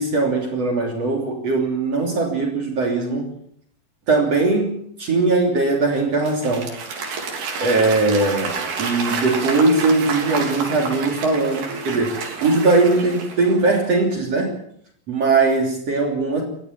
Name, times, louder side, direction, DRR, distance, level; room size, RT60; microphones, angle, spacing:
voice 1, 0.0-3.3 4.1-6.7 7.6-14.5 15.1-16.4, right 3 dB, 45° right, 1 dB, 4.1 m, -20 dB
Applause / Crowd, 6.0-13.7, right 4 dB, 85° right, 5.3 m, -29 dB
23.0 x 15.5 x 7.5 m, 0.67 s
omnidirectional pair, 4.3 m